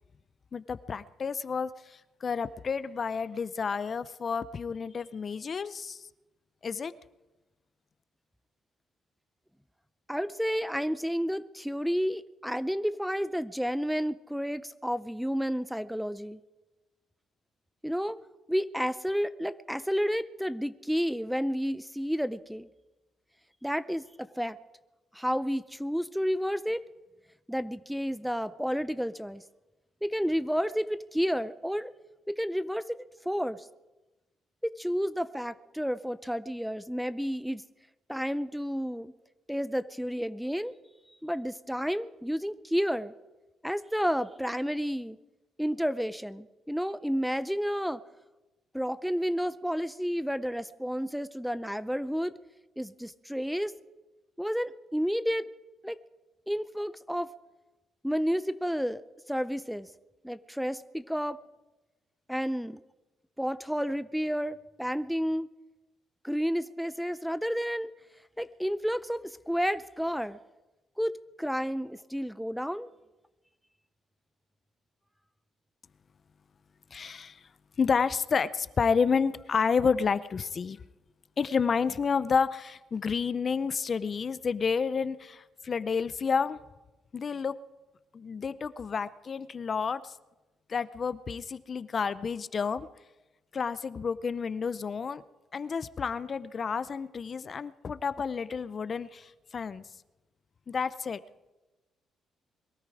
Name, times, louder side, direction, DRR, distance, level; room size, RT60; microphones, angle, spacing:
voice 1, 0.5-6.0 6.6-6.9 76.9-77.4 77.8-80.8 81.4-86.6 87.1-87.5 88.1-90.1 90.7-92.9 93.5-95.2 95.5-99.8 100.7-101.2, left 5 dB, 45° left, 14 dB, 0.6 m, -30 dB
voice 2, 10.1-16.4 17.8-18.2 18.5-22.7 23.6-24.6 25.1-26.8 27.5-29.4 30.0-31.9 32.3-33.7 34.6-37.6 38.1-39.1 39.5-40.7 41.2-43.1 43.6-45.2 45.6-48.0 48.7-52.3 52.8-53.7 54.4-55.5 55.8-56.0 56.5-57.3 58.0-59.0 59.3-59.9 60.2-61.4 62.3-62.8 63.4-65.5 66.2-67.9 68.4-70.4 71.0-72.9, equal, ahead, 15 dB, 0.5 m, -31 dB
22.5 x 13.0 x 4.9 m, 1.1 s
cardioid pair, 90°, 0 cm